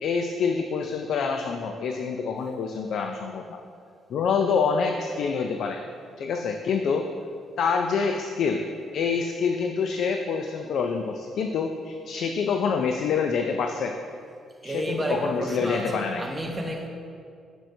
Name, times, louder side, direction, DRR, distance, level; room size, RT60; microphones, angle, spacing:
voice 1, 0.0-3.6 4.1-5.8 6.2-7.1 7.6-8.6 8.9-13.9 14.6-16.2, left 5 dB, 70° left, 4 dB, 0.4 m, -26 dB
voice 2, 14.6-16.9, right 1 dB, 15° right, 1 dB, 1.0 m, -31 dB
8.5 x 6.2 x 2.7 m, 2.3 s
cardioid pair, 90°, 0 cm